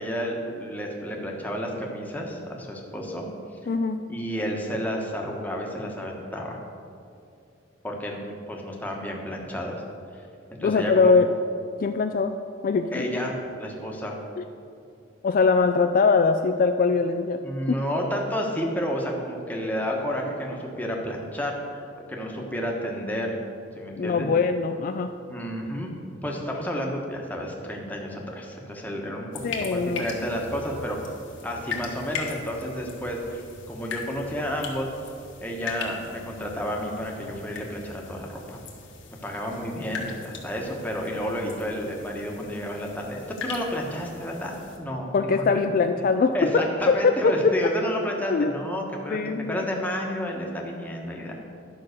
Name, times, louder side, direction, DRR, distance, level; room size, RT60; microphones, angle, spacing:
voice 1, 0.0-3.3 4.1-6.6 7.8-8.2 8.5-9.8 10.5-11.1 12.9-14.2 17.4-23.3 23.8-24.3 25.3-25.9 26.2-29.3 29.6-31.1 31.4-33.4 33.7-34.9 35.4-38.6 39.2-45.6 46.3-49.2 49.5-51.3, equal, 10° left, -1 dB, 1.2 m, -31 dB
voice 2, 3.7-4.0 10.6-11.3 11.8-12.3 12.6-13.1 14.4-14.5 15.2-17.4 17.7-17.8 24.0-25.1 29.4-30.1 45.1-47.7 48.3-48.5 49.1-49.6, left 4 dB, 45° left, 7 dB, 0.3 m, -22 dB
gotes lent, 29.3-44.8, left 5 dB, 80° left, 1.4 m, -39 dB
10.5 x 5.6 x 6.5 m, 2.5 s
head